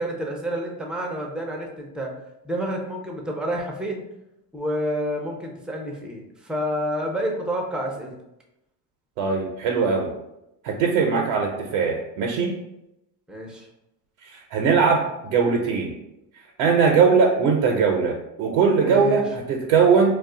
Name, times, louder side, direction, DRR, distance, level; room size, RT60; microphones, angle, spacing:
voice 1, 0.0-2.2 2.4-4.0 4.5-8.1 13.3-13.7 18.8-19.2, equal, ahead, 0 dB, 0.3 m, -29 dB
voice 2, 9.2-10.1 10.6-12.5 14.2-15.9 16.6-20.2, right 5 dB, 75° right, 0 dB, 0.7 m, -20 dB
2.4 x 2.3 x 3.7 m, 0.86 s
supercardioid pair, 105°, 47 cm